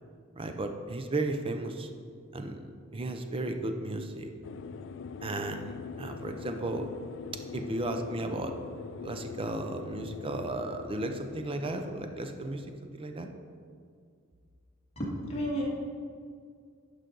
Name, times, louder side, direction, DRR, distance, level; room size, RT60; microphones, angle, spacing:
voice 1, 0.4-1.9 2.3-2.6 2.9-4.3 5.2-6.9 7.5-8.5 9.0-13.3, right 2 dB, 25° right, 6 dB, 0.6 m, -34 dB
sound 1, 4.4-12.8, left 5 dB, 60° left, 0.3 m, -43 dB
voice 2, 15.0-15.6, equal, 30° left, -5 dB, 2.0 m, -32 dB
11.0 x 5.1 x 3.9 m, 2.2 s
head